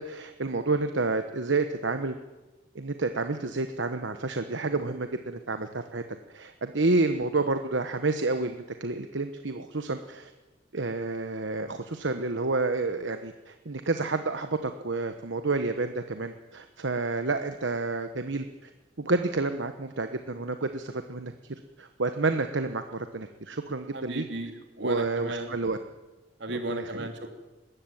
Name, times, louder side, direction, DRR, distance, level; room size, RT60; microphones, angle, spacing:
voice 1, 0.0-2.1 2.7-6.0 6.3-10.3 10.7-18.7 19.0-21.3 21.8-24.3 24.8-25.8 26.7-27.1, right 3 dB, 85° right, 8 dB, 1.1 m, -29 dB
voice 2, 23.9-25.6 26.4-27.3, right 1 dB, 70° right, 5 dB, 3.2 m, -34 dB
20.5 x 17.0 x 9.1 m, 1.2 s
head